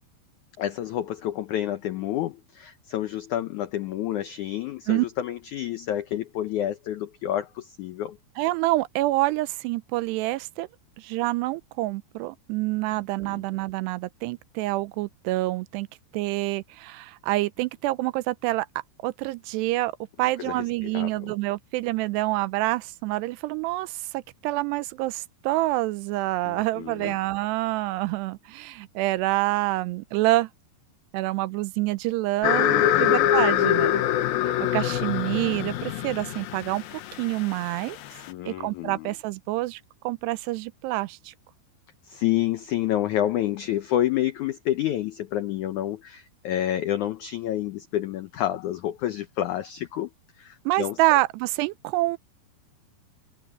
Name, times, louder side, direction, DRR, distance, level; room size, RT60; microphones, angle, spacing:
voice 1, 0.6-8.2 13.2-13.4 20.4-21.1 26.4-27.1 32.6-33.3 38.3-39.1 42.0-50.1 50.4-51.0, left 12 dB, 85° left, 1.7 m, -29 dB
voice 2, 8.4-10.7 11.0-15.9 16.1-18.7 19.0-19.9 20.2-30.5 31.1-34.0 34.4-38.0 38.5-41.3 50.7-52.2, right 19 dB, 85° right, 2.8 m, -27 dB
sound 1, 32.4-38.3, left 12 dB, 70° left, 2.8 m, -24 dB
omnidirectional pair, 4.7 m